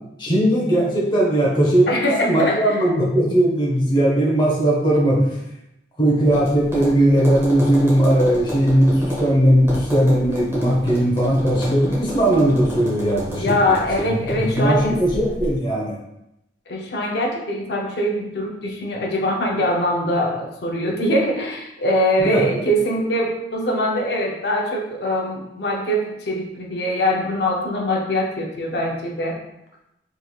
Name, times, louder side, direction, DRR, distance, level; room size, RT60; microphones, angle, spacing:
voice 1, 0.2-5.4 6.0-16.0 22.2-22.7, right 1 dB, 25° left, -4 dB, 0.8 m, -18 dB
voice 2, 1.9-2.8 13.3-15.0 16.7-29.4, equal, 65° left, -1 dB, 0.6 m, -22 dB
Tap, 6.2-15.5, equal, 15° right, 1.1 m, -32 dB
3.6 x 3.2 x 2.3 m, 0.85 s
head